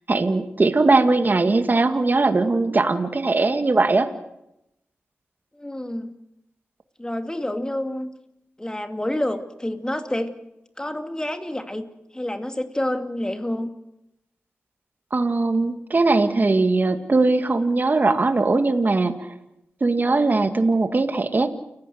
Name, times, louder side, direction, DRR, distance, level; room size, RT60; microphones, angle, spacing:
voice 1, 0.1-4.1 15.1-19.1 19.8-21.5, right 3 dB, 45° right, 8 dB, 2.0 m, -20 dB
voice 2, 5.5-6.1 7.0-8.1 8.6-10.3 10.8-11.9 12.1-13.7, left 1 dB, 15° left, 7 dB, 2.6 m, -28 dB
29.5 x 15.5 x 7.9 m, 0.86 s
cardioid pair, 55°, 4 cm